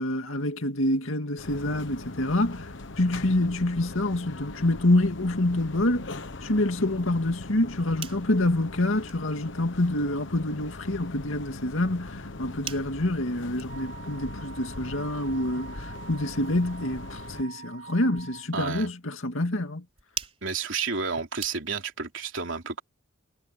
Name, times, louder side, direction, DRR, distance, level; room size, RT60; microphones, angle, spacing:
voice 1, 0.0-2.7 3.0-6.1 6.4-19.8, left 1 dB, 80° left, 2.2 m, -27 dB
sound 1, 1.4-17.4, left 2 dB, 60° left, 1.2 m, -40 dB
sound 2, 7.6-22.0, right 7 dB, 30° right, 5.0 m, -47 dB
Wind instrument woodwind instrument, 13.7-18.5, right 6 dB, 45° right, 6.1 m, -46 dB
voice 2, 18.5-18.9 20.4-22.8, right 5 dB, 65° right, 3.3 m, -31 dB
head